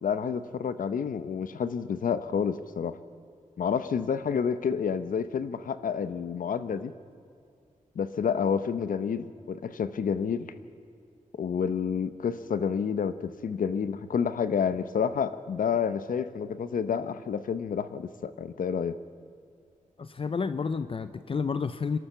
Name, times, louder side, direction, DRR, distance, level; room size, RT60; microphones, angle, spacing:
voice 1, 0.0-3.0 3.6-6.9 8.0-10.5 11.4-19.0, left 7 dB, 85° left, 12 dB, 0.8 m, -29 dB
voice 2, 20.0-22.0, left 5 dB, 40° left, 12 dB, 0.6 m, -30 dB
29.0 x 13.0 x 6.8 m, 2.3 s
wide cardioid pair, 145°, 14 cm